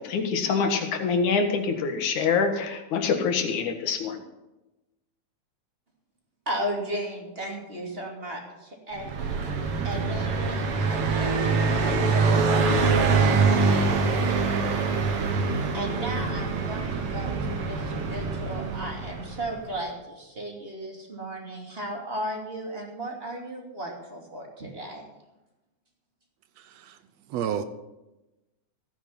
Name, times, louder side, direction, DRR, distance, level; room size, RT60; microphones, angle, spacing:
voice 1, 0.0-4.2, left 5 dB, 80° left, 5 dB, 3.0 m, -25 dB
voice 2, 6.5-9.1 9.8-11.5 11.8-13.5 15.7-25.0, right 1 dB, 20° right, 0 dB, 2.6 m, -35 dB
Car passing by, 9.0-19.6, right 4 dB, 55° right, 2.1 m, -24 dB
voice 3, 26.6-27.0 27.3-27.6, right 9 dB, 70° right, 11 dB, 1.7 m, -31 dB
15.5 x 9.6 x 5.8 m, 1.0 s
omnidirectional pair, 3.5 m